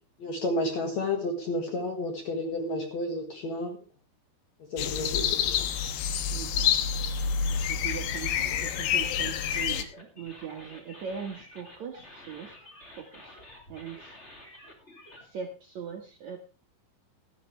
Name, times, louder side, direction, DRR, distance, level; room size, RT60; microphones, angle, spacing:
voice 1, 0.2-3.8 4.7-5.4, left 2 dB, 55° left, 3 dB, 2.2 m, -31 dB
sound 1, 4.8-9.8, left 8 dB, 75° left, 2.6 m, -28 dB
voice 2, 6.3-7.0 7.7-13.4 13.7-14.6 15.2-16.4, right 7 dB, 65° right, 2 dB, 1.9 m, -41 dB
sound 2, 7.5-15.2, left 1 dB, 20° left, 1.9 m, -50 dB
15.5 x 12.5 x 3.3 m, 0.33 s
omnidirectional pair, 5.0 m